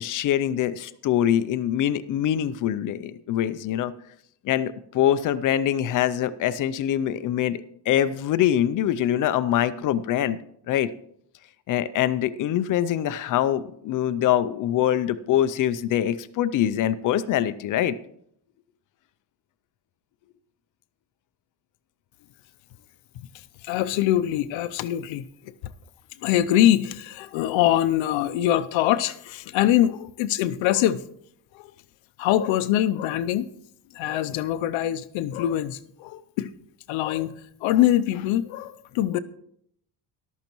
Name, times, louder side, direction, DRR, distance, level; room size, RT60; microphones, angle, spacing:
voice 1, 0.0-3.9 4.4-7.6 7.9-10.4 10.7-10.9 11.7-18.0, left 11 dB, 45° left, 0.5 m, -24 dB
voice 2, 23.6-25.5 26.2-31.0 31.5-31.7 32.2-33.5 33.9-36.5 36.9-39.2, left 12 dB, 85° left, 0.7 m, -23 dB
13.5 x 12.0 x 3.0 m
cardioid pair, 170°, 45 cm